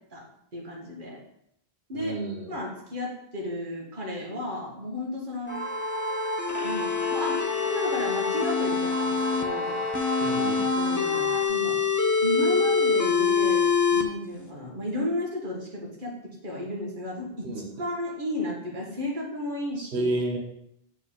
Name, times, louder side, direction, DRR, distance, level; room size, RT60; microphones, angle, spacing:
voice 1, 0.5-1.2 1.9-2.2 2.5-5.6 6.6-9.8 10.8-11.8 12.2-17.5 17.8-20.1, left 1 dB, 50° right, -2 dB, 1.6 m, -33 dB
voice 2, 1.9-2.6 10.2-10.7 17.4-17.7 19.9-20.4, right 2 dB, 80° right, 0 dB, 1.2 m, -30 dB
sound 1, 5.5-9.4 9.9-14.0, left 5 dB, 20° left, 0.5 m, -25 dB
sound 2, 5.5-11.5, right 2 dB, 10° right, 1.0 m, -34 dB
Bowed string instrument, 6.5-11.2, left 7 dB, 85° left, 1.1 m, -33 dB
7.0 x 4.7 x 3.7 m, 0.75 s
omnidirectional pair, 1.1 m